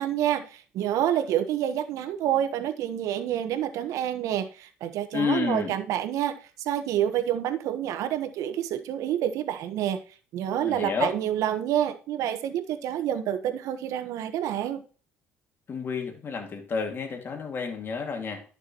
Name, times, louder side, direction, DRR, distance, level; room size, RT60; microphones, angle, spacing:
voice 1, 0.0-10.0 10.3-14.8, right 11 dB, 75° right, 1.1 m, -28 dB
voice 2, 5.1-5.7 10.6-11.1 15.7-18.4, left 5 dB, 40° left, 2.2 m, -30 dB
11.5 x 6.7 x 3.0 m
cardioid pair, 90°, 6 cm